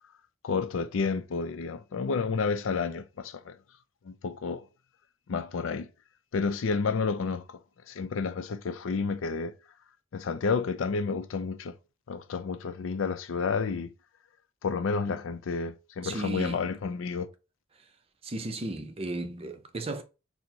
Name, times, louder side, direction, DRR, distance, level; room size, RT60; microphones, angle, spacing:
voice 1, 0.4-3.6 4.0-4.6 5.3-5.9 6.3-7.6 7.9-9.5 10.1-11.7 12.1-13.9 14.6-17.3, left 5 dB, 80° left, 0.4 m, -30 dB
voice 2, 16.0-16.7 18.2-20.0, right 2 dB, 30° right, 0.5 m, -35 dB
4.4 x 2.1 x 3.8 m
head